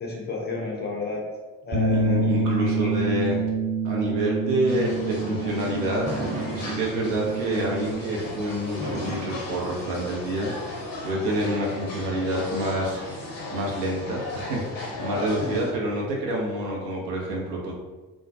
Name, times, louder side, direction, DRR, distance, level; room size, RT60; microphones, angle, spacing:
voice 1, 0.0-1.3 1.6-2.9 15.4-15.5, left 3 dB, 25° left, -3 dB, 0.4 m, -32 dB
Bass guitar, 1.7-8.0, right 3 dB, 45° right, 1.1 m, -27 dB
voice 2, 1.9-3.4 3.8-6.0 6.5-13.2 13.5-17.7, right 1 dB, 75° right, -3 dB, 0.7 m, -28 dB
sound 1, 4.7-15.7, left 2 dB, 70° left, 0.7 m, -36 dB
Fireworks, 6.0-7.3 8.8-10.3, right 1 dB, 15° right, 0.7 m, -34 dB
2.3 x 2.2 x 2.6 m, 1.2 s
figure-of-eight pair, 45°, 49 cm